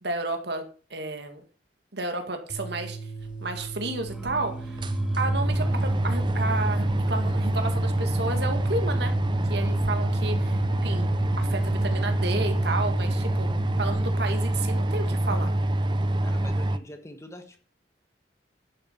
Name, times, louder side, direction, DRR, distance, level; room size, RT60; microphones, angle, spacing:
voice 1, 0.0-0.6 0.9-1.4 1.9-3.0 3.4-4.8 5.2-9.1 9.5-11.1 11.4-15.5, right 2 dB, 65° right, 6 dB, 2.1 m, -32 dB
sound 1, 2.5-13.9, right 4 dB, 55° left, 2.6 m, -38 dB
sound 2, 4.1-13.7, equal, 5° right, 1.7 m, -45 dB
sound 3, 4.3-4.4 4.6-16.8, right 1 dB, 25° right, 0.6 m, -25 dB
voice 2, 16.2-17.6, left 1 dB, 15° left, 7 dB, 1.3 m, -43 dB
10.5 x 7.1 x 5.8 m, 0.38 s
head